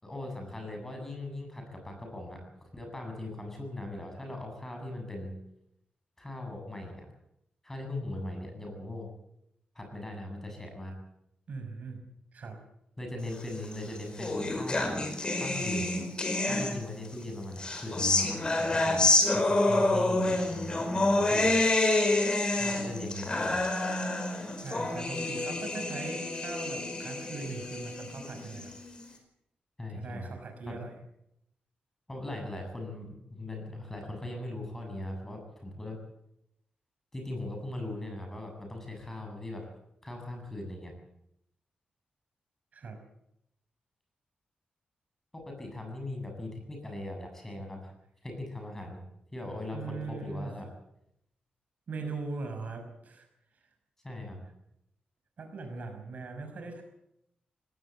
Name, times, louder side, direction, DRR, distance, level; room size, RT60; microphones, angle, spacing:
voice 1, 0.0-5.3 6.2-7.1 7.6-9.1 9.7-10.9 13.0-15.9 16.4-19.1 19.3-21.5 22.5-23.6 29.8-30.3 30.7-30.8 32.1-36.0 37.1-39.7 40.0-40.9 45.3-47.9 48.2-49.0 49.3-50.7 54.0-54.4, left 1 dB, 15° left, 3 dB, 7.7 m, -39 dB
voice 2, 11.5-12.6 24.6-28.7 29.0-29.1 29.9-30.9 42.7-43.0 49.7-50.6 51.9-53.3 55.4-56.8, right 3 dB, 55° right, 5 dB, 5.7 m, -40 dB
sound 1, 13.6-17.1 17.6-29.0, left 2 dB, 30° left, 4.9 m, -28 dB
19.0 x 18.0 x 8.6 m, 0.79 s
wide cardioid pair, 120°, 3 cm